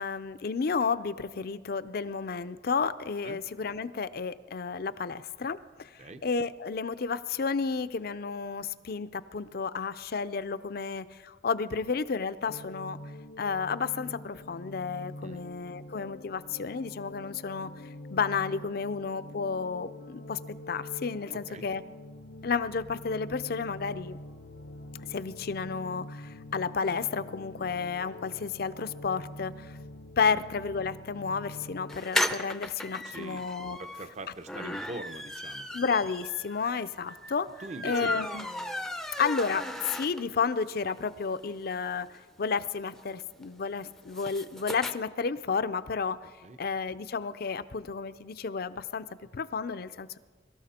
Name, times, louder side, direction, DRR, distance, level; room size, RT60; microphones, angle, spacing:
voice 1, 0.0-13.0 13.4-17.7 18.1-20.4 20.7-21.8 22.4-24.2 25.1-29.8 30.2-33.8 34.6-34.8 35.7-37.5 37.8-38.4 39.2-46.2 46.6-49.1 49.3-50.2, left 5 dB, 55° left, 13 dB, 0.5 m, -32 dB
sound 1, 12.5-32.0, left 1 dB, 80° left, 0.8 m, -45 dB
voice 2, 21.3-21.7 30.3-30.4 33.1-33.5 33.8-35.7 37.6-38.3 46.4-46.6, right 2 dB, 40° right, 10 dB, 0.8 m, -43 dB
sound 2, 31.9-40.5 40.9-41.0 41.2-41.3 41.5-44.9, left 1 dB, ahead, 0.5 m, -36 dB
23.0 x 13.0 x 4.3 m, 1.4 s
head